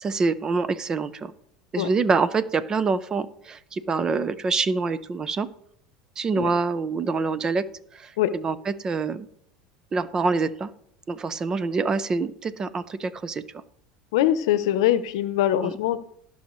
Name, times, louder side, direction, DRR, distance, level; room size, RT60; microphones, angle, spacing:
voice 1, 0.0-1.3 1.7-5.5 6.2-7.6 7.9-9.3 9.9-10.7 11.1-13.4 15.6-15.7, right 4 dB, 25° right, 15 dB, 0.7 m, -26 dB
voice 2, 14.1-16.0, left 12 dB, 80° left, 13 dB, 0.8 m, -22 dB
16.5 x 5.5 x 3.2 m, 0.69 s
supercardioid pair, 110°, 3 cm